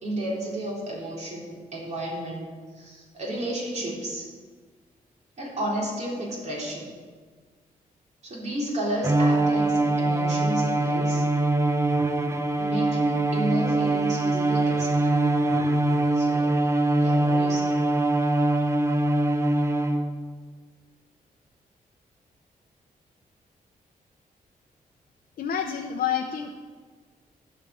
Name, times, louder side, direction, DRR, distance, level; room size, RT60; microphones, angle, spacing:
voice 1, 0.0-2.5 2.7-4.3 5.4-6.9 8.2-11.2 12.6-15.4 16.1-16.6 17.0-17.8, right 1 dB, 50° right, -4 dB, 3.4 m, -32 dB
Bowed string instrument, 9.0-20.3, right 2 dB, 20° right, 0.7 m, -23 dB
voice 2, 25.4-26.5, left 8 dB, 80° left, 3 dB, 0.8 m, -28 dB
12.5 x 5.1 x 8.2 m, 1.5 s
wide cardioid pair, 130°, 15 cm